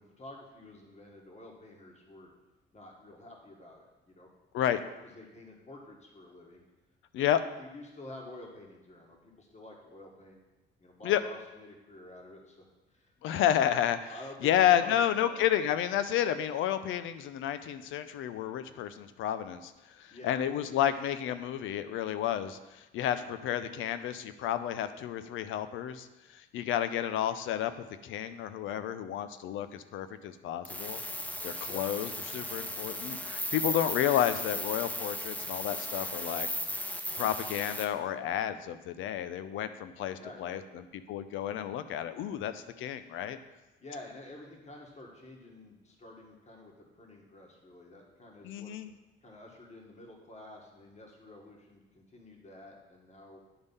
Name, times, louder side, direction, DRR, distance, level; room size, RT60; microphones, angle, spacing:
voice 1, 0.0-2.3 2.7-4.3 4.7-6.6 7.2-7.3 7.6-10.4 10.8-12.6 12.9-13.4 14.1-14.5 14.8-15.5 20.1-20.4 23.2-23.3 31.6-31.8 40.2-40.8 43.8-48.7 49.2-53.4, left 1 dB, 35° left, 0 dB, 1.6 m, -50 dB
voice 2, 13.2-14.1 14.4-19.7 20.0-26.1 26.3-27.7 28.0-31.0 31.4-36.5 37.2-43.4 48.4-48.9, left 10 dB, 85° left, 11 dB, 0.5 m, -31 dB
sound 1, 30.6-37.9, left 1 dB, 10° left, 0.6 m, -36 dB
9.9 x 3.5 x 5.4 m, 1.1 s
cardioid pair, 90°, 20 cm